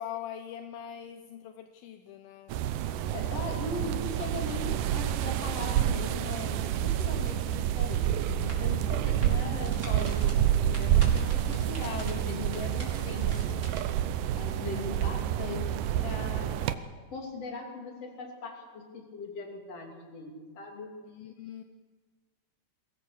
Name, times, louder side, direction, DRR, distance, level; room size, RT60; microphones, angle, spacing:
voice 1, 0.0-2.6 9.1-9.2 21.0-21.6, left 10 dB, 80° left, 8 dB, 2.6 m, -42 dB
sound 1, 2.5-16.8, right 11 dB, 75° right, 2.0 m, -28 dB
voice 2, 3.1-13.6 14.3-20.9, left 3 dB, 45° left, 2 dB, 3.6 m, -39 dB
sound 2, 8.0-13.8, right 1 dB, 20° right, 4.2 m, -45 dB
22.0 x 17.0 x 7.1 m, 1.4 s
omnidirectional pair, 4.4 m